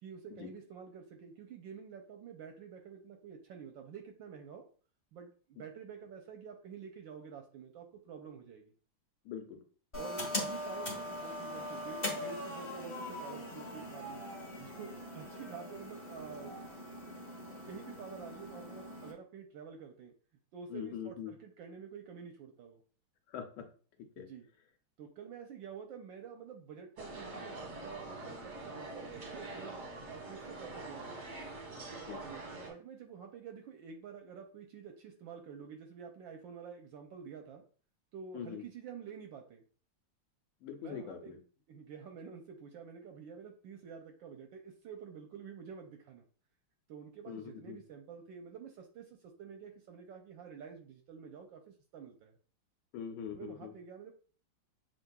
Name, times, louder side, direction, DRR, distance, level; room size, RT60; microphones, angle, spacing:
voice 1, 0.0-4.7 5.1-8.6 9.9-14.3 14.6-16.6 17.7-20.1 20.5-22.8 24.2-24.5 25.0-29.8 30.1-31.2 32.2-37.6 38.1-39.6 40.8-41.4 41.7-46.2 46.9-52.4 53.3-54.1, right 7 dB, 75° right, 4 dB, 1.2 m, -49 dB
voice 2, 9.2-9.6 20.7-21.3 23.3-23.7 24.2-24.3 32.1-32.2 38.3-38.6 40.6-41.4 47.3-47.8 52.9-53.7, left 8 dB, 80° left, 4 dB, 1.7 m, -42 dB
sound 1, 9.9-19.1, left 1 dB, 25° left, 0.7 m, -41 dB
sound 2, 27.0-32.7, right 2 dB, 50° right, 0.9 m, -44 dB
7.4 x 2.6 x 2.2 m, 0.41 s
omnidirectional pair, 2.4 m